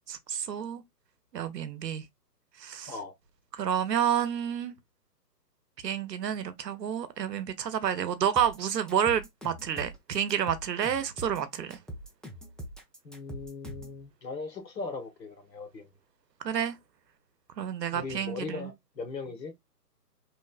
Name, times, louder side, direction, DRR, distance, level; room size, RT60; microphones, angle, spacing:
voice 1, 0.1-0.8 1.3-2.1 2.6-2.9 3.5-4.7 5.8-11.8 16.4-16.8 17.6-18.7, right 9 dB, 75° right, 0.7 m, -29 dB
sound 1, 8.4-14.0, equal, ahead, 0.3 m, -43 dB
voice 2, 13.0-15.9 17.9-19.5, left 4 dB, 85° left, 1.1 m, -39 dB
3.1 x 2.1 x 2.3 m
hypercardioid pair, 170°, 49 cm